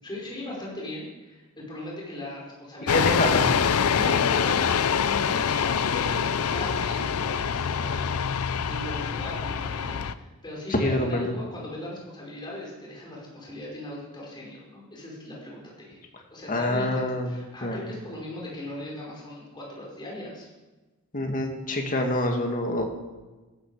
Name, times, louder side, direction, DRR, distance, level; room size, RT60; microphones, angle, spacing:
voice 1, 0.0-3.4 3.9-16.0 16.3-20.5, left 1 dB, 20° left, -4 dB, 5.1 m, -38 dB
sound 1, 2.9-10.1, left 7 dB, 70° left, 0.5 m, -25 dB
voice 2, 2.9-3.5 10.7-11.3 16.5-17.3 17.6-17.8 21.1-22.9, left 1 dB, 40° left, 3 dB, 2.2 m, -26 dB
14.5 x 12.5 x 4.9 m, 1.2 s
head